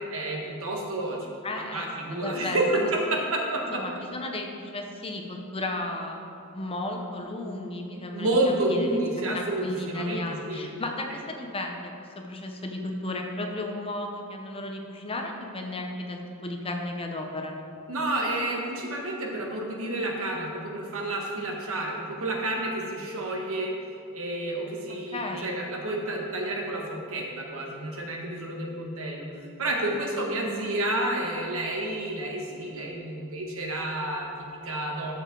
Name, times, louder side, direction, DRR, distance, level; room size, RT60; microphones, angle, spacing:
voice 1, 0.1-1.2 1.7-3.8 8.1-10.7 17.9-23.7 24.1-29.3 29.6-35.2, right 1 dB, 65° right, 0 dB, 1.5 m, -30 dB
voice 2, 1.4-2.9 3.7-9.0 9.3-17.6 25.1-25.5, left 2 dB, 25° left, 2 dB, 0.8 m, -34 dB
13.0 x 6.6 x 3.9 m, 2.6 s
head